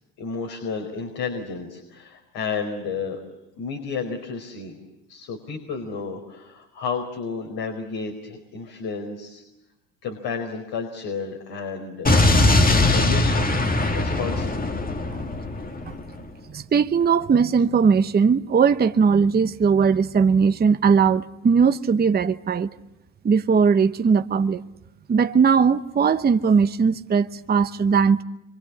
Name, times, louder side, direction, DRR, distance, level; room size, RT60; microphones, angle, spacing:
voice 1, 0.2-3.2 3.6-4.8 5.1-9.4 10.0-13.5 13.9-14.5, left 5 dB, 65° left, 4.8 m, -32 dB
Explosion, 12.0-16.1, left 2 dB, 20° left, 1.9 m, -20 dB
voice 2, 16.5-22.7 23.2-24.6 25.1-28.2, right 6 dB, 25° right, 0.9 m, -19 dB
26.5 x 24.5 x 8.5 m
supercardioid pair, 85°, 41 cm